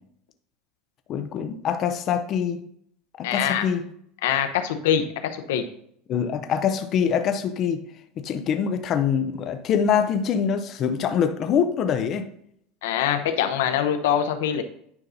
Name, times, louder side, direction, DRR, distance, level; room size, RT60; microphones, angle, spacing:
voice 1, 1.1-2.6 3.2-3.8 6.1-7.8 8.2-12.3, left 7 dB, 40° left, 0.5 m, -24 dB
voice 2, 3.2-3.7 4.2-5.6 12.8-14.6, left 9 dB, 90° left, 0.8 m, -24 dB
9.6 x 5.5 x 2.7 m
supercardioid pair, 140°, 0 cm